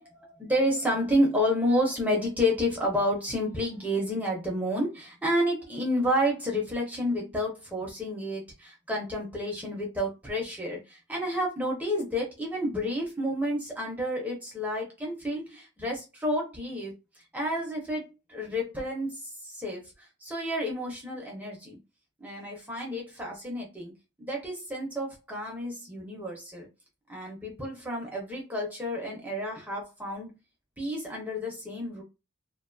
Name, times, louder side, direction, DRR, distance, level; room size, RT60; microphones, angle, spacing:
voice 1, 0.0-16.9 17.3-19.8 20.2-21.8 22.2-23.9 24.2-26.7 27.1-30.3 30.8-32.0, equal, 10° right, 0.5 m, -30 dB
2.4 x 2.2 x 2.5 m
head